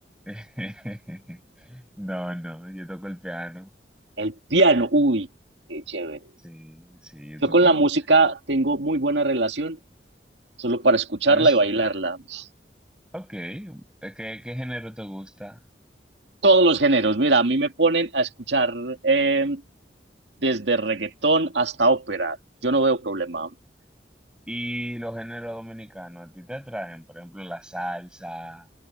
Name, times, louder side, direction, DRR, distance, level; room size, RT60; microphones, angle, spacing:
voice 1, 0.3-3.7 6.4-7.8 11.3-11.6 13.1-15.6 24.5-28.7, equal, 5° right, 6.3 m, -36 dB
voice 2, 4.2-5.3 5.7-6.2 7.4-9.8 10.6-12.4 16.4-19.6 20.4-22.4 22.6-23.5, right 2 dB, 85° right, 2.1 m, -21 dB
head